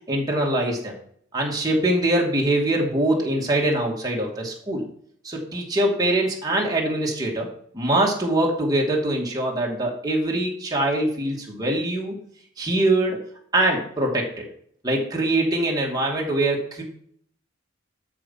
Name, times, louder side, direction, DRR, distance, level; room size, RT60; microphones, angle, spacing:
voice 1, 0.1-0.9 1.3-4.8 5.2-7.5 7.7-12.2 12.6-13.2 13.5-14.5 14.8-16.8, right 1 dB, 20° right, -1 dB, 2.5 m, -23 dB
13.0 x 5.2 x 5.8 m, 0.62 s
head